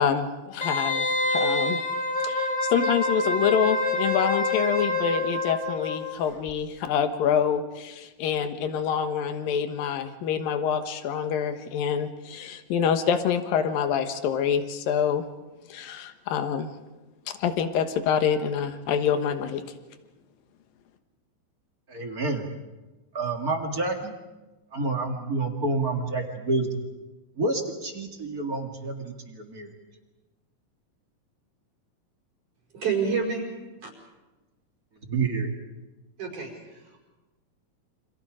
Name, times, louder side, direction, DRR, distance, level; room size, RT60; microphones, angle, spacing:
voice 1, 0.0-1.8 2.2-15.2 15.7-16.7 17.3-19.6, left 8 dB, 75° left, 8 dB, 3.1 m, -26 dB
Wind instrument woodwind instrument, 0.6-6.2 6.5-6.6, left 2 dB, 20° left, 1.3 m, -27 dB
voice 2, 21.9-22.5 23.1-24.1 24.7-26.7 27.4-29.7 35.1-35.5, right 3 dB, 35° right, 3 dB, 1.9 m, -28 dB
voice 3, 32.7-33.5 33.8-33.9 36.2-37.0, right 5 dB, 60° right, -1 dB, 6.5 m, -29 dB
29.5 x 26.5 x 5.1 m, 1.1 s
omnidirectional pair, 4.1 m